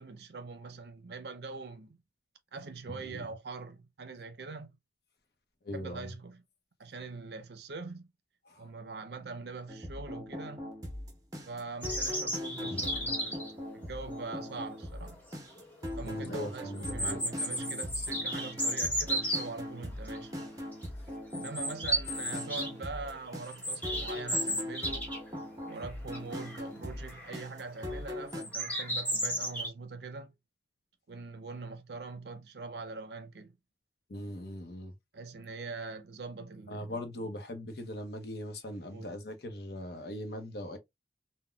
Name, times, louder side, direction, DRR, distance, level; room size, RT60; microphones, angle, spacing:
voice 1, 0.0-2.0 2.5-4.8 5.7-6.4 6.8-8.1 8.6-10.7 11.4-13.4 13.7-15.2 16.0-20.3 21.3-25.1 25.6-30.3 31.1-33.5 35.1-36.9 38.9-39.1, right 4 dB, 65° right, 0.5 m, -43 dB
voice 2, 2.9-3.3 5.6-6.1 8.5-8.7 12.6-12.8 16.0-17.2 34.1-34.9 36.7-40.8, left 1 dB, 60° left, 0.7 m, -40 dB
sound 1, 9.7-28.4, left 1 dB, 20° right, 0.7 m, -40 dB
sound 2, 11.8-13.5 15.1-15.2 15.6-15.7 16.8-19.4 20.1-20.4 20.7-20.9 21.3-22.7 23.0-25.3 25.6-25.7 26.1-26.6 27.1-27.4 28.3-29.7, equal, 10° left, 0.9 m, -33 dB
3.8 x 2.1 x 2.3 m
head